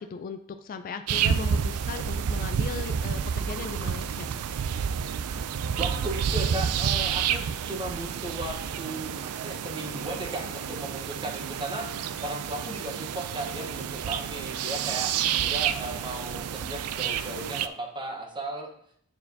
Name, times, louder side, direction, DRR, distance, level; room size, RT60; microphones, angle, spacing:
voice 1, 0.0-4.3, left 5 dB, 40° left, 9 dB, 0.3 m, -38 dB
sound 1, 1.1-17.7, right 7 dB, 90° right, 0.4 m, -29 dB
voice 2, 5.8-18.7, right 1 dB, 20° right, 2 dB, 1.0 m, -36 dB
9.5 x 4.4 x 2.7 m, 0.65 s
head